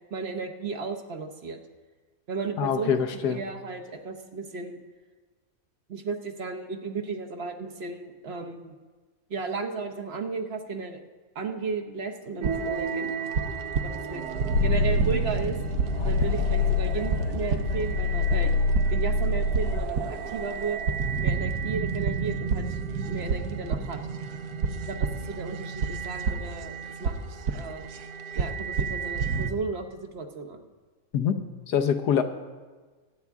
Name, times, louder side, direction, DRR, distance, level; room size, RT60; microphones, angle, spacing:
voice 1, 0.1-1.6 2.3-2.9 3.2-4.8 5.9-8.7 9.3-11.0 11.3-13.3 13.8-14.3 14.6-15.6 16.0-18.5 18.9-20.8 21.2-22.8 23.1-24.0 24.9-27.9 28.3-30.6, right 4 dB, 45° right, 6 dB, 1.0 m, -34 dB
voice 2, 2.6-3.4 31.1-31.4 31.7-32.2, left 8 dB, 85° left, 8 dB, 1.4 m, -24 dB
sound 1, 12.4-29.5, right 5 dB, 75° right, 1.3 m, -30 dB
sound 2, 14.5-19.9, left 3 dB, 65° left, 1.2 m, -26 dB
22.5 x 9.4 x 3.6 m, 1.4 s
omnidirectional pair, 1.7 m